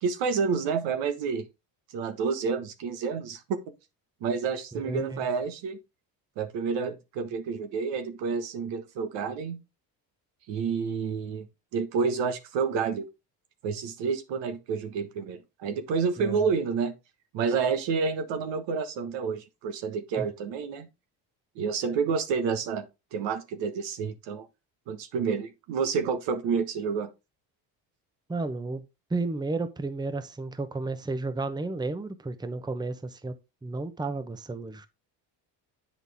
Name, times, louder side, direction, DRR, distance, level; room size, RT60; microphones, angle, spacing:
voice 1, 0.0-1.4 1.9-3.6 4.2-5.8 6.4-9.6 10.5-11.5 11.7-13.1 13.6-16.9 17.3-20.9 21.5-22.9 23.1-24.5 24.9-27.1, right 5 dB, 75° right, 1.4 m, -29 dB
voice 2, 4.7-5.3 16.2-16.5 20.2-20.3 28.3-33.4 33.6-34.9, right 3 dB, 10° right, 0.8 m, -33 dB
8.1 x 5.9 x 3.5 m
cardioid pair, 95°, 44 cm